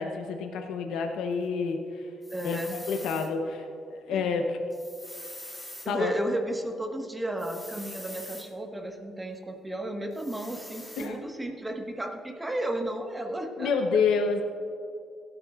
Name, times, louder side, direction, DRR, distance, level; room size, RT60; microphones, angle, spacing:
voice 1, 0.0-2.1 2.4-2.6 2.9-4.6 5.9-6.1 11.0-11.2 13.6-14.4, left 5 dB, 85° left, 4 dB, 0.8 m, -28 dB
sound 1, 2.2-3.3 4.7-5.9 7.4-8.5 10.1-11.1, left 1 dB, ahead, 3.0 m, -44 dB
voice 2, 2.3-2.8 4.1-4.3 5.8-13.7, right 1 dB, 15° right, 3 dB, 1.4 m, -33 dB
17.0 x 11.5 x 2.5 m, 2.6 s
cardioid pair, 90°, 0 cm